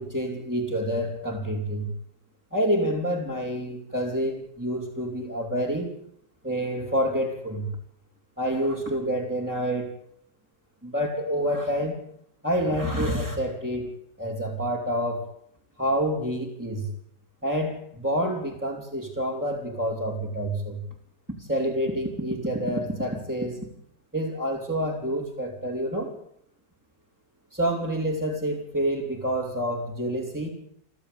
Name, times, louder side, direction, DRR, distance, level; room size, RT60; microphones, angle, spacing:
voice 1, 0.0-1.9 2.5-6.0 6.4-7.7 8.4-9.9 10.8-11.9 12.4-15.2 15.8-16.9 17.4-20.8 21.4-23.7 24.1-26.1 27.5-30.5, equal, 5° right, -4 dB, 3.7 m, -28 dB
29.5 x 12.0 x 8.5 m, 0.69 s
omnidirectional pair, 1.9 m